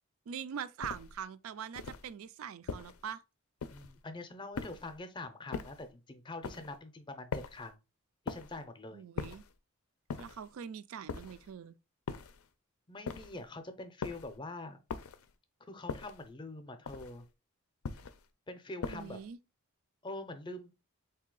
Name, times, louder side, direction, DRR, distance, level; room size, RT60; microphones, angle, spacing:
voice 1, 0.3-3.2 8.9-9.4 10.2-11.8 18.9-19.4, right 8 dB, 75° right, 0.4 m, -43 dB
sound 1, 0.8-1.2 1.7-2.1 2.7-3.1 3.6-4.0 4.5-5.0 5.5-5.9 6.4-6.8 7.3-7.7 8.3-8.6 9.2-9.6 10.1-10.5 11.1-11.5 12.1-12.5 13.1-13.5 14.0-14.4 14.9-15.3 15.9-16.3 16.9-17.3 17.8-18.3 18.8-19.2, left 5 dB, 80° left, 0.4 m, -41 dB
voice 2, 3.7-7.8 8.3-9.0 12.9-14.8 15.7-17.2 18.5-19.2 20.0-20.7, left 2 dB, 20° left, 0.5 m, -44 dB
3.9 x 2.8 x 3.7 m
head